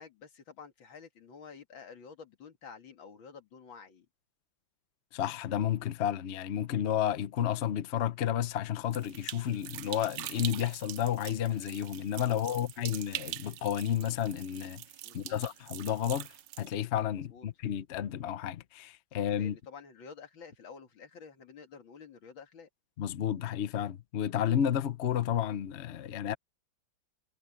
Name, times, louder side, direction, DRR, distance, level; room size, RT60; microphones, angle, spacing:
voice 1, 0.0-4.1 12.3-12.6 15.0-15.4 17.1-17.5 19.3-22.7, left 6 dB, 60° left, 2.7 m, -50 dB
voice 2, 5.1-14.8 15.1-16.3 16.6-19.5 23.0-26.3, left 10 dB, 80° left, 0.6 m, -31 dB
sound 1, 8.9-16.7, right 16 dB, 75° right, 1.0 m, -43 dB
omnidirectional pair, 2.4 m